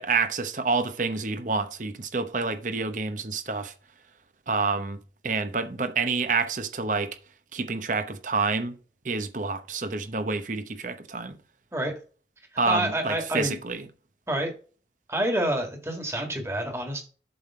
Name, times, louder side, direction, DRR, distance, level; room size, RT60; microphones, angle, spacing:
voice 1, 0.0-3.7 4.5-7.2 7.5-8.8 9.0-11.4 12.6-13.9, right 4 dB, 45° right, 0.9 m, -28 dB
voice 2, 12.6-13.5 14.3-14.5 15.1-17.0, right 1 dB, 15° right, 1.7 m, -28 dB
7.8 x 3.5 x 5.8 m
head